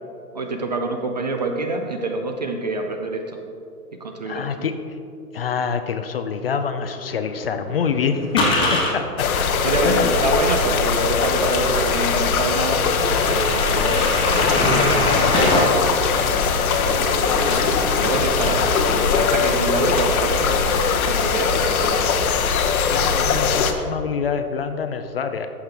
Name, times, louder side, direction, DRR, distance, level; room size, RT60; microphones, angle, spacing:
voice 1, 0.3-3.4 3.9-4.7 8.5-8.7 9.6-16.0 16.5-17.7 17.9-18.7 19.2-22.1, right 2 dB, 30° right, 4 dB, 0.4 m, -27 dB
voice 2, 4.3-4.8 5.3-9.3 9.8-10.1 14.9-15.2 18.5-18.8 22.8-25.5, left 6 dB, 40° left, 8 dB, 0.4 m, -26 dB
sound 1, 6.9-8.9 10.6-10.7 11.1-11.2 11.8-11.9 12.1-12.2 12.7-15.6 16.0-19.8 20.1-21.2, left 2 dB, 10° left, 1.3 m, -25 dB
sound 2, 9.2-23.7, left 5 dB, 65° left, 1.0 m, -21 dB
14.0 x 5.8 x 3.4 m, 2.6 s
hypercardioid pair, 140°, 47 cm